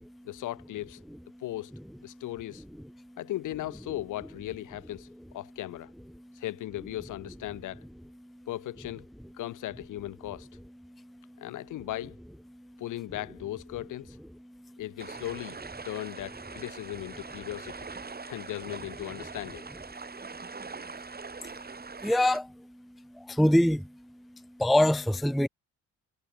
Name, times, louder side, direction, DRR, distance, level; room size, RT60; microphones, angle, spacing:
voice 1, 0.2-1.0 1.4-1.7 2.0-2.6 3.2-5.1 5.3-5.9 6.3-7.8 8.5-9.0 9.4-10.5 11.4-12.2 12.8-14.2 14.8-15.6 15.8-17.9 18.2-19.7, left 15 dB, 85° left, 3.4 m, -37 dB
sound 1, 15.0-22.4, right 4 dB, 30° right, 7.5 m, -43 dB
voice 2, 22.0-22.5 23.2-23.9 24.6-25.5, left 1 dB, ahead, 0.5 m, -23 dB
cardioid pair, 90°, 30 cm